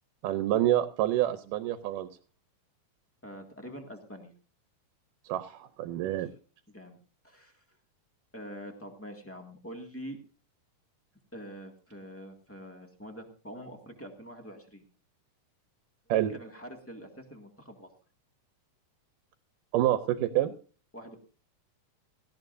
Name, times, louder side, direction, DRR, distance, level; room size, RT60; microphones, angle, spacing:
voice 1, 0.2-2.1 5.2-6.3 16.1-16.3 19.7-20.5, right 13 dB, 85° right, 11 dB, 2.4 m, -27 dB
voice 2, 3.2-4.3 6.0-6.3 6.7-7.0 7.2-7.6 8.3-10.2 11.3-14.8 16.1-17.9 20.9-21.1, equal, 5° left, 4 dB, 1.2 m, -45 dB
17.5 x 15.0 x 2.6 m, 0.37 s
omnidirectional pair, 3.7 m